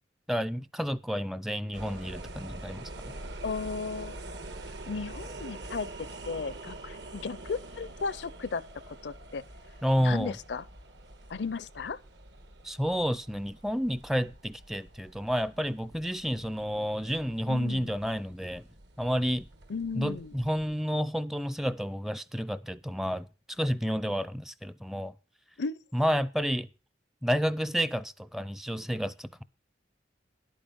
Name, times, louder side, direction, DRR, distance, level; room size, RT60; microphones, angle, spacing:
voice 1, 0.3-2.9 9.8-10.4 12.6-18.7 19.0-19.5 19.9-25.1 25.9-26.7 27.2-29.4, equal, ahead, 0.5 m, -30 dB
sound 1, 1.7-20.7, right 2 dB, 75° right, 1.7 m, -46 dB
voice 2, 3.4-4.2 4.9-5.9 6.3-8.6 8.9-9.4 10.0-10.6 11.3-12.0 17.5-17.9 19.7-20.3 25.6-25.8, left 4 dB, 70° left, 0.5 m, -35 dB
11.0 x 8.8 x 5.3 m
head